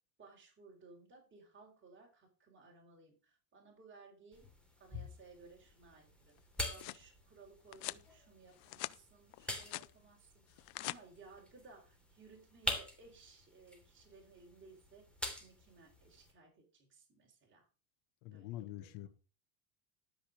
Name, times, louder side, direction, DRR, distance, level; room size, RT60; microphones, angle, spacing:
voice 1, 0.2-4.5 4.8-6.3 6.7-17.7 18.3-19.1, right 4 dB, 25° right, 4.0 m, -60 dB
sound 1, 4.3-16.3, left 1 dB, ahead, 3.0 m, -46 dB
sound 2, 6.4-7.0 7.7-8.0 8.5-9.0 9.3-9.9 10.5-11.0, left 19 dB, 55° left, 0.6 m, -44 dB
voice 2, 18.2-19.1, left 14 dB, 80° left, 1.5 m, -45 dB
12.5 x 5.5 x 6.4 m
supercardioid pair, 120°, 47 cm